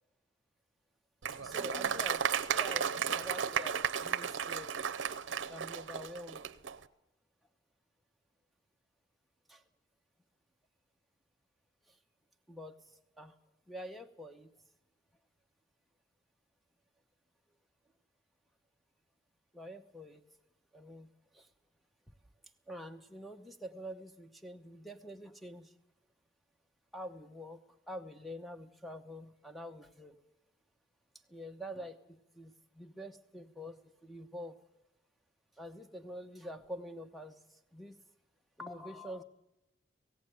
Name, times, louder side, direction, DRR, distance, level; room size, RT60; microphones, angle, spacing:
Applause, 1.2-6.8, right 7 dB, 75° right, 0.7 m, -34 dB
voice 1, 1.4-4.8 5.2-6.5 9.5-9.6 11.9-12.0 12.5-13.3 13.7-14.5 19.5-20.2 20.7-21.5 22.1-22.2 22.7-25.7 26.9-30.2 31.3-34.6 35.6-38.0 38.6-39.2, equal, ahead, 7 dB, 0.8 m, -46 dB
17.5 x 16.5 x 9.1 m, 0.92 s
head